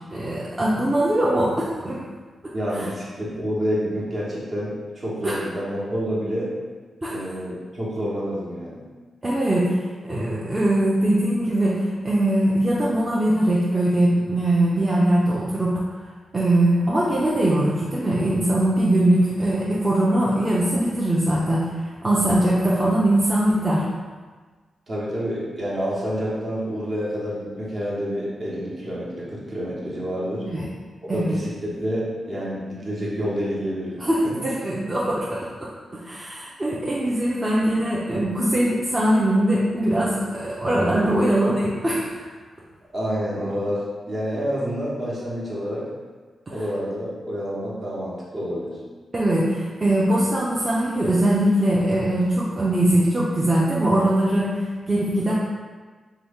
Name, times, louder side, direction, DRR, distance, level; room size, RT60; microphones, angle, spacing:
voice 1, 0.1-2.0 2.4-2.9 5.2-5.4 7.0-7.2 9.2-9.8 10.0-15.8 16.3-21.7 22.0-23.9 30.5-30.7 31.1-31.4 34.0-42.2 49.1-55.3, right 1 dB, 30° right, -6 dB, 0.5 m, -21 dB
voice 2, 2.5-6.5 7.1-8.8 24.9-30.5 31.0-34.0 34.2-34.3 42.9-45.9 46.5-48.8, equal, 55° right, -6 dB, 1.0 m, -28 dB
2.9 x 2.3 x 3.5 m, 1.4 s
cardioid pair, 60°, 0 cm